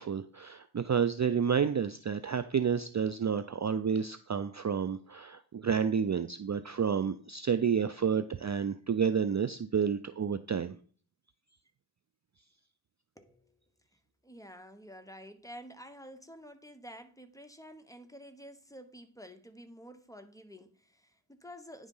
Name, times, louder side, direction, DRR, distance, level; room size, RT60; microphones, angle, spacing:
voice 1, 0.0-10.8, right 7 dB, 35° right, 0.4 m, -30 dB
voice 2, 13.2-13.6 14.2-21.9, equal, 5° left, 1.0 m, -50 dB
9.7 x 3.7 x 5.5 m
cardioid pair, 45°, 49 cm